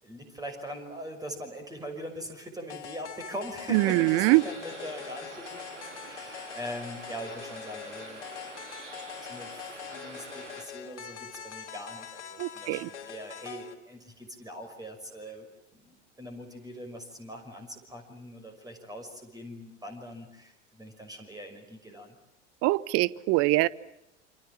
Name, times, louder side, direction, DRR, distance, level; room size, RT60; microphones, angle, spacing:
voice 1, 0.0-8.6 9.0-15.5 15.7-22.1, equal, 10° right, 5 dB, 5.9 m, -42 dB
sound 1, 2.7-13.7, left 8 dB, 70° left, 3.1 m, -43 dB
voice 2, 3.7-4.4 12.4-12.9 22.6-23.7, right 21 dB, 40° right, 21 dB, 1.0 m, -23 dB
sound 2, 3.7-10.6, right 4 dB, 80° right, 4.1 m, -46 dB
28.5 x 26.0 x 7.4 m, 0.84 s
figure-of-eight pair, 85°, 36 cm